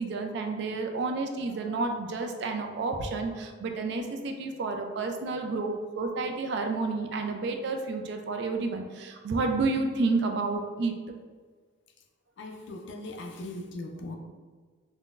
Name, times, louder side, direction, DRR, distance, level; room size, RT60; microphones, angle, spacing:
voice 1, 0.0-10.9, right 3 dB, 60° right, 4 dB, 0.3 m, -30 dB
voice 2, 12.4-14.1, left 2 dB, 60° left, 2 dB, 0.4 m, -39 dB
3.7 x 2.1 x 2.4 m, 1.5 s
head